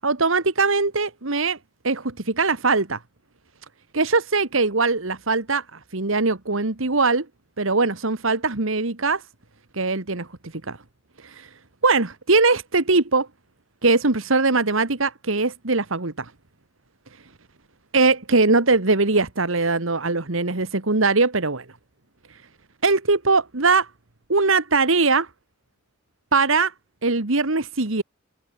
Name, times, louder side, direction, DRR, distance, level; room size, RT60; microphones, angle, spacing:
voice 1, 0.0-1.6 1.8-3.0 3.9-7.3 7.6-9.2 9.7-10.3 10.7-10.8 11.2-11.5 11.8-13.3 13.8-16.3 17.9-21.7 22.8-23.9 24.3-25.3 26.3-26.7 27.0-28.0, right 3 dB, 75° right, 1.7 m, -21 dB
head